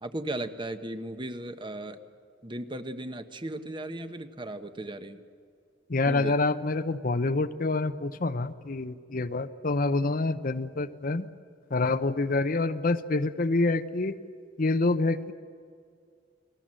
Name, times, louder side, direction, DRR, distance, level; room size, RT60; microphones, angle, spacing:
voice 1, 0.0-2.0 2.4-5.2 6.0-6.4, right 1 dB, 25° right, 9 dB, 1.1 m, -36 dB
voice 2, 5.9-11.3 11.7-14.2 14.6-15.3, left 3 dB, 45° left, 11 dB, 0.7 m, -27 dB
29.5 x 20.0 x 7.6 m, 2.3 s
head